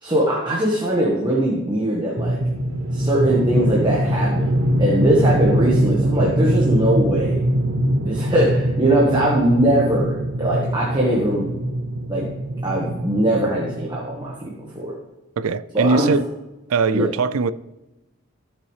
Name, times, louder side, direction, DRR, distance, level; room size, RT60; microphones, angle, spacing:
voice 1, 0.0-2.4 2.9-7.4 8.0-11.5 12.1-12.3 12.6-14.9 15.7-16.1 16.9-17.1, right 1 dB, 20° right, 1.4 m, -21 dB
sound 1, 2.2-14.4, right 1 dB, 60° right, 1.0 m, -22 dB
voice 2, 15.4-16.2 16.7-17.5, right 4 dB, 80° right, 0.4 m, -20 dB
15.0 x 6.7 x 3.3 m
head